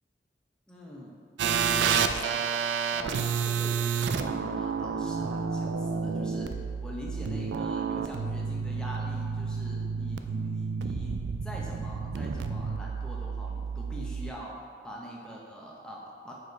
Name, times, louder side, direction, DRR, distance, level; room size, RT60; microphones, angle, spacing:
voice 1, 0.7-1.2 1.9-2.5 2.9-16.3, equal, 5° left, -3 dB, 0.7 m, -43 dB
sound 1, 1.4-14.3, right 6 dB, 85° right, 0.3 m, -30 dB
4.9 x 4.7 x 4.6 m, 2.2 s
head